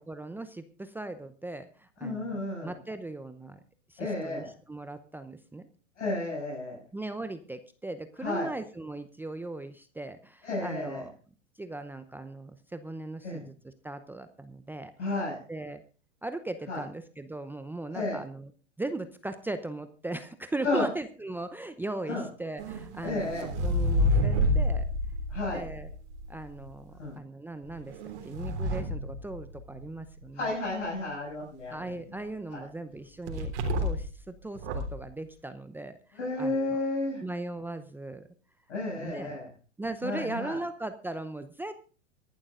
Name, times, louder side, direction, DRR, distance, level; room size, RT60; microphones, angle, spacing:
voice 1, 0.1-2.3 2.6-3.6 3.9-5.7 6.9-11.1 11.6-14.9 15.5-15.8 16.2-18.5 18.8-23.3 23.6-24.9 25.5-25.9 26.3-28.0 28.2-30.5 31.7-33.5 33.8-36.0 36.4-36.9 37.2-38.3 38.9-39.4 39.8-41.9, right 2 dB, 5° right, 10 dB, 0.7 m, -38 dB
voice 2, 2.0-2.7 4.0-4.5 6.0-6.8 8.2-8.5 10.4-11.1 13.2-13.5 15.0-15.4 16.7-16.8 17.9-18.2 20.6-20.9 22.1-22.3 23.0-23.5 25.3-25.6 27.0-27.2 30.3-31.9 32.5-32.7 36.1-37.2 38.7-39.5 40.0-40.6, left 2 dB, 80° left, -4 dB, 7.1 m, -32 dB
sound 1, 22.6-26.7 27.6-30.0 33.3-34.2 34.5-35.0, left 1 dB, 65° right, 3.5 m, -29 dB
24.5 x 11.5 x 2.5 m, 0.38 s
hypercardioid pair, 105°, 36 cm